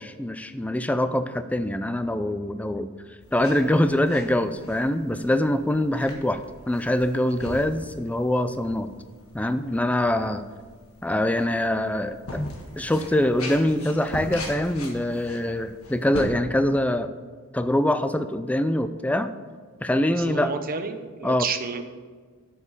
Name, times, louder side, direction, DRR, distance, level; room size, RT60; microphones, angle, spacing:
voice 1, 0.0-2.9 3.3-6.4 6.7-8.9 9.3-10.5 11.0-17.1 17.5-19.3 19.8-20.6 21.2-21.5, left 1 dB, 5° left, 10 dB, 0.4 m, -24 dB
sound 1, 3.2-16.3, left 1 dB, 75° left, 1.7 m, -41 dB
voice 2, 20.3-21.9, right 5 dB, 40° right, 7 dB, 0.9 m, -30 dB
8.1 x 7.0 x 7.3 m, 1.5 s
head